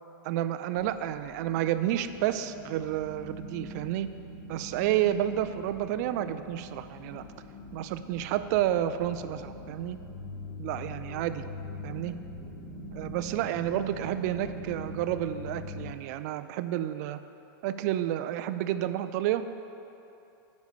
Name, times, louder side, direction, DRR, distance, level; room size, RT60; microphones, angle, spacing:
voice 1, 0.2-4.1 4.5-7.2 7.7-10.0 10.6-11.4 11.8-12.2 12.9-17.2 17.6-19.5, right 12 dB, 50° right, 11 dB, 0.4 m, -30 dB
sound 1, 0.7-15.9, left 1 dB, 35° left, 1.1 m, -43 dB
9.5 x 5.3 x 6.7 m, 2.8 s
hypercardioid pair, 135°, 12 cm